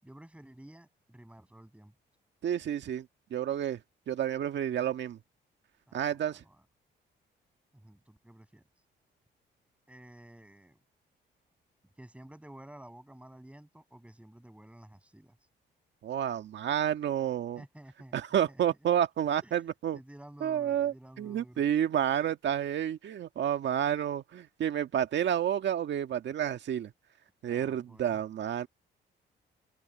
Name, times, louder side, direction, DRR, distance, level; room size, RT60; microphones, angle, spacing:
voice 1, 0.0-1.9 5.9-6.7 7.7-8.6 9.9-10.8 12.0-15.4 17.6-18.2 18.5-18.8 19.4-19.6 19.9-21.6 27.5-28.2, right 1 dB, 5° right, 7.5 m, -52 dB
voice 2, 2.4-3.8 4.1-5.2 5.9-6.4 16.0-17.6 18.1-20.0 20.4-26.9 27.4-28.7, right 10 dB, 65° right, 1.7 m, -30 dB
open air
cardioid pair, 90°, 20 cm